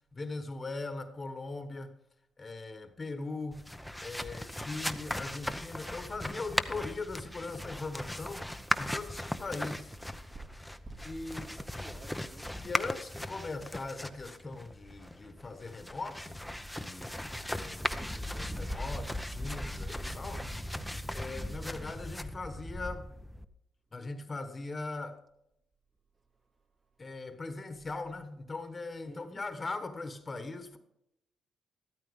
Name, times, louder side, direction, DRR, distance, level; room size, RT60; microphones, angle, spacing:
voice 1, 0.1-1.9 2.4-3.6 4.0-9.9 11.0-11.6 12.6-16.4 16.8-20.5 21.1-23.1 23.9-25.2 27.0-30.8, left 3 dB, 35° left, 1.3 m, -40 dB
sound 1, 3.5-23.4, left 1 dB, 5° left, 0.8 m, -38 dB
voice 2, 11.3-12.6 29.0-29.4, right 3 dB, 45° right, 2.3 m, -52 dB
13.0 x 13.0 x 3.7 m
supercardioid pair, 60°, 0 cm